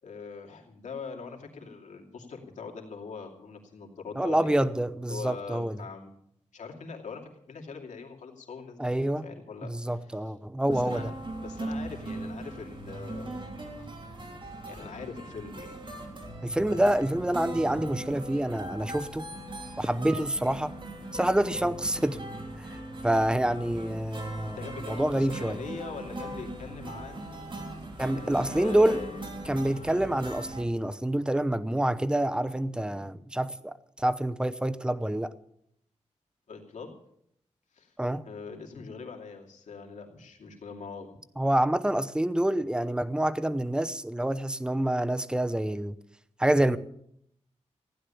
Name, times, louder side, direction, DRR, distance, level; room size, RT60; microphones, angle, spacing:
voice 1, 0.0-4.6 5.0-6.1 6.5-10.3 10.6-11.1 11.4-13.5 13.8-14.1 14.7-15.7 16.7-16.9 17.5-18.1 24.5-27.5 28.1-29.2 32.9-33.1 36.5-36.9 37.7-37.9 38.2-41.2, left 5 dB, 90° left, 2.5 m, -42 dB
voice 2, 4.2-5.8 8.8-9.3 9.6-11.1 16.4-19.3 19.8-20.7 21.1-22.2 22.6-22.8 23.0-25.6 28.0-29.0 29.4-35.3 38.0-38.2 41.4-46.0 46.4-46.8, right 1 dB, 5° right, 0.8 m, -27 dB
sound 1, 10.7-30.6, right 1 dB, 45° right, 3.4 m, -39 dB
15.5 x 10.0 x 7.0 m
wide cardioid pair, 80°, 12 cm